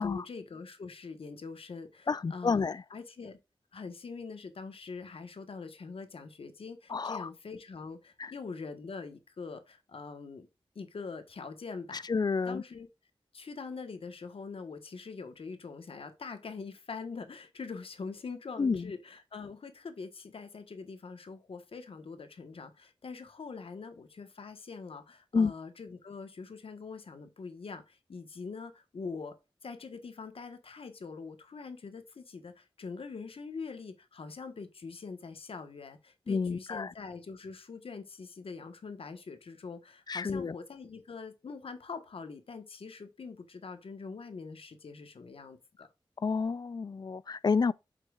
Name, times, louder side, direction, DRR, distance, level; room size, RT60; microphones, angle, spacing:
voice 1, 0.0-3.4 3.7-10.5 10.7-12.1 12.4-12.9 13.3-29.3 29.6-45.9, left 4 dB, 85° left, 1.4 m, -43 dB
voice 2, 2.1-2.8 6.9-7.3 8.2-8.3 12.1-12.6 18.6-18.9 25.3-25.5 36.3-36.9 40.1-40.5 46.2-47.7, left 5 dB, 45° left, 0.4 m, -29 dB
8.1 x 5.9 x 2.5 m
wide cardioid pair, 75°, 9 cm